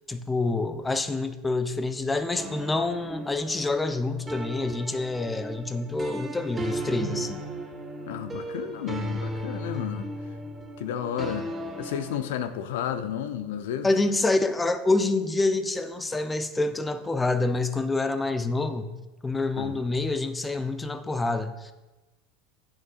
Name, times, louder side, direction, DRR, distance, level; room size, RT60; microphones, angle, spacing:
voice 1, 0.1-7.4 13.8-18.9 19.2-21.7, left 2 dB, 15° left, 9 dB, 0.8 m, -27 dB
sound 1, 2.4-12.2, right 1 dB, 15° right, 1.1 m, -36 dB
voice 2, 8.1-10.1 10.8-11.5 11.8-13.9 19.6-19.7, left 9 dB, 65° left, 10 dB, 0.6 m, -32 dB
10.5 x 8.9 x 2.5 m, 1.1 s
hypercardioid pair, 80°, 0 cm